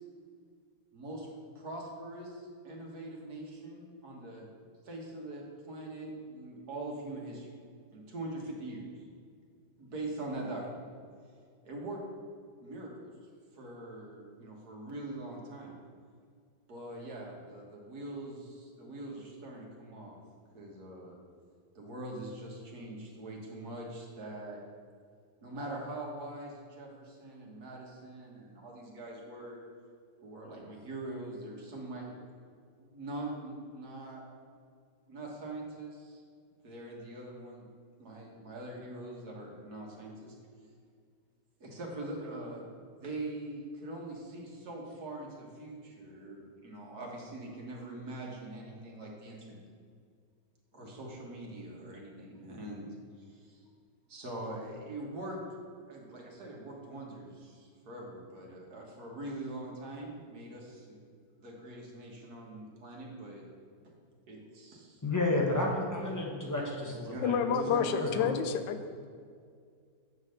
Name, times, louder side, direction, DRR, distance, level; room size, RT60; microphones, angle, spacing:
voice 1, 0.9-1.3 1.6-4.5 4.8-7.5 7.9-9.0 9.8-10.9 11.6-12.0 12.6-13.1 13.5-15.8 16.7-20.2 20.5-21.2 21.8-24.6 25.4-29.6 30.2-32.1 32.8-34.2 35.1-36.2 36.6-37.7 38.0-40.4 41.6-42.6 43.0-49.6 50.7-53.6 54.1-55.4 55.9-61.0 61.4-63.5 64.3-65.0 66.9-68.4, right 2 dB, 60° right, -1 dB, 1.8 m, -43 dB
voice 2, 65.0-67.3 67.7-68.3, left 2 dB, 15° left, -2 dB, 0.7 m, -31 dB
voice 3, 67.2-69.1, left 7 dB, 80° left, 9 dB, 1.3 m, -30 dB
8.8 x 4.0 x 6.5 m, 2.2 s
omnidirectional pair, 2.0 m